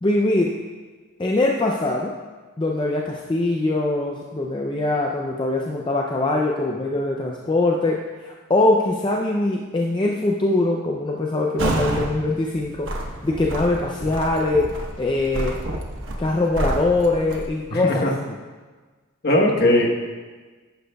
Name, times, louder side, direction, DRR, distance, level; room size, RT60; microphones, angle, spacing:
voice 1, 0.0-0.6 1.2-2.1 2.6-12.9 13.2-14.7 15.0-15.6 16.2-18.1, left 2 dB, 20° left, -1 dB, 0.4 m, -22 dB
sound 1, 11.6-12.1 12.5-17.5, right 1 dB, 65° right, 1.0 m, -29 dB
voice 2, 17.7-18.1 19.2-20.0, left 1 dB, 45° left, 0 dB, 1.1 m, -19 dB
10.5 x 10.0 x 2.3 m, 1.4 s
head